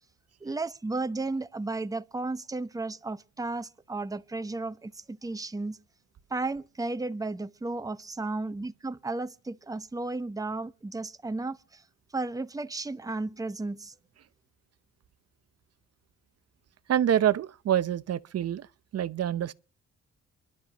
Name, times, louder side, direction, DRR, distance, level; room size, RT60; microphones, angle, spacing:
voice 1, 0.4-5.8 6.3-11.8 12.1-13.9, right 3 dB, 10° right, 0.9 m, -34 dB
voice 2, 16.9-18.7 18.9-19.5, right 10 dB, 55° right, 0.8 m, -26 dB
29.0 x 12.0 x 3.0 m
cardioid pair, 90°, 30 cm